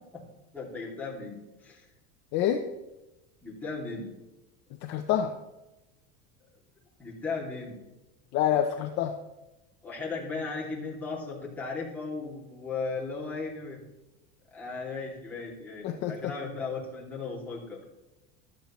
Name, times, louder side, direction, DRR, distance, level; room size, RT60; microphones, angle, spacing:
voice 1, 0.5-1.9 3.4-4.1 7.0-7.8 9.8-13.8 14.5-17.8, left 4 dB, 5° left, -6 dB, 2.6 m, -36 dB
voice 2, 2.3-2.6 4.8-5.3 8.3-9.1 15.8-16.3, left 10 dB, 35° left, 5 dB, 0.7 m, -27 dB
15.0 x 12.0 x 3.1 m, 0.99 s
cardioid pair, 175°, 30 cm